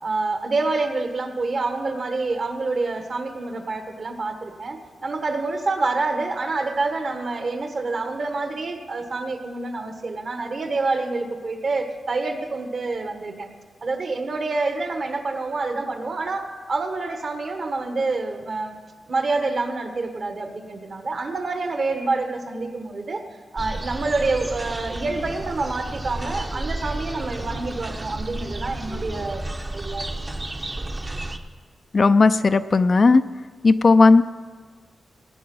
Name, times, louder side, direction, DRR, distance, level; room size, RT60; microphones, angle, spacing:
voice 1, 0.0-13.5 13.8-18.8 19.1-23.2 23.5-29.4 29.7-30.1, right 3 dB, 50° right, 6 dB, 1.4 m, -27 dB
sound 1, 23.6-31.4, right 2 dB, 25° right, 0.8 m, -32 dB
voice 2, 31.9-33.2 33.6-34.2, left 3 dB, 40° left, 11 dB, 0.4 m, -15 dB
18.0 x 9.3 x 5.5 m, 1.5 s
wide cardioid pair, 110°, 0 cm